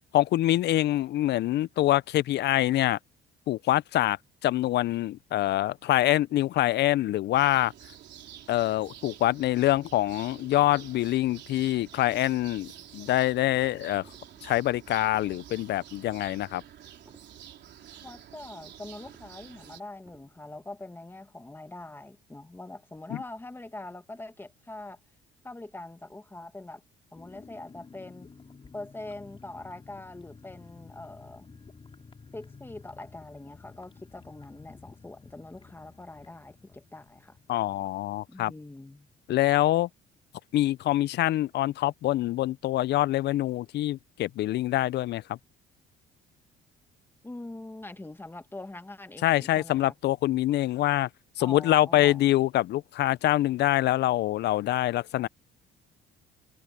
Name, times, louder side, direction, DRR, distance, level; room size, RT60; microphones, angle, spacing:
voice 1, 0.1-3.0 3.5-4.2 4.4-7.7 8.5-14.0 14.4-16.6 23.1-23.2 37.5-38.5 39.3-39.9 40.5-45.4 49.2-51.1 51.4-55.3, left 14 dB, 55° left, 0.4 m, -25 dB
sound 1, 7.3-19.8, right 10 dB, 60° right, 3.7 m, -49 dB
sound 2, 13.0-13.6 14.0-14.6 14.9-15.6 16.0-16.6 16.9-17.6 17.9-18.6 18.9-19.6 20.0-20.6, right 2 dB, 15° right, 2.8 m, -60 dB
voice 2, 18.0-25.0 25.4-26.8 27.1-28.3 28.7-31.5 32.3-37.4 38.3-39.1 47.2-49.9 51.4-52.2, left 2 dB, 10° left, 1.6 m, -43 dB
sound 3, 27.1-39.5 39.8-39.9 40.1-40.4, left 4 dB, 25° left, 3.8 m, -52 dB
cardioid pair, 115°, 20 cm